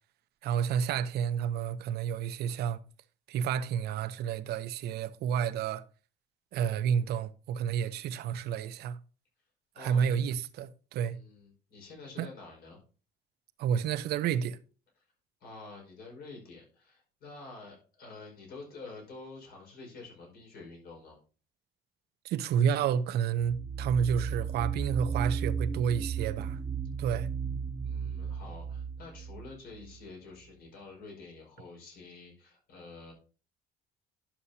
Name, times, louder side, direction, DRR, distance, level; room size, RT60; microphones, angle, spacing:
voice 1, 0.4-2.8 3.3-5.8 6.5-9.0 9.8-11.2 12.2-12.3 13.6-14.6 22.2-26.6 27.0-27.3, right 8 dB, 75° right, 0.7 m, -30 dB
voice 2, 9.7-10.2 11.1-12.8 15.4-21.2 27.8-33.1, left 3 dB, 65° left, 5.1 m, -48 dB
sound 1, 23.4-30.0, right 6 dB, 20° right, 0.5 m, -35 dB
11.5 x 7.0 x 2.8 m
cardioid pair, 110°, 17 cm